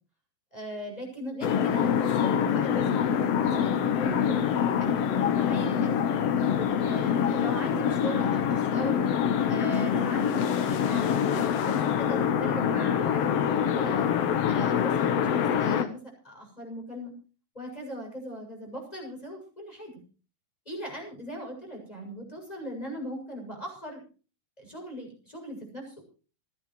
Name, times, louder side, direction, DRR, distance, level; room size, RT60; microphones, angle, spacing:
voice 1, 0.5-1.9 2.2-3.1 3.4-5.9 6.6-9.0 9.5-14.1 14.4-16.0 16.2-17.1 17.5-19.9 20.7-24.0 24.6-26.0, equal, 10° left, 2 dB, 6.9 m, -39 dB
sound 1, 1.4-15.9, left 8 dB, 70° left, 1.5 m, -25 dB
28.5 x 11.0 x 3.2 m, 0.36 s
omnidirectional pair, 4.4 m